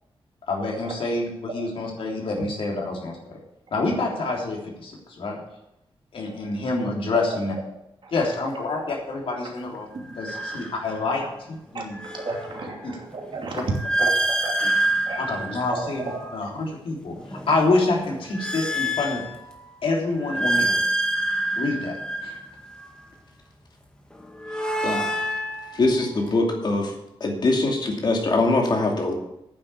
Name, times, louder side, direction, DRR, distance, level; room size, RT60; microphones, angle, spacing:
voice 1, 0.5-3.4 3.7-5.4 6.1-7.5 8.1-9.9 10.2-12.0 12.8-12.9 13.5-13.6 14.6-14.7 15.2-16.0 16.3-19.2 19.8-20.8 21.6-21.9 22.2-22.4, left 3 dB, 75° left, -1 dB, 3.5 m, -27 dB
sound 1, 8.1-8.4 10.1-11.3 11.7-16.5 17.0-19.7 20.1-23.1 24.1-26.4, right 1 dB, 10° left, 1.9 m, -28 dB
voice 2, 11.7-13.7 14.0-14.1 14.4-14.6 15.0-15.2 15.7-16.2, right 4 dB, 60° right, 1 dB, 2.7 m, -33 dB
voice 3, 25.7-26.9 27.2-29.1, left 2 dB, 50° left, 1 dB, 2.6 m, -22 dB
9.5 x 7.8 x 8.4 m, 0.86 s
wide cardioid pair, 145°, 9 cm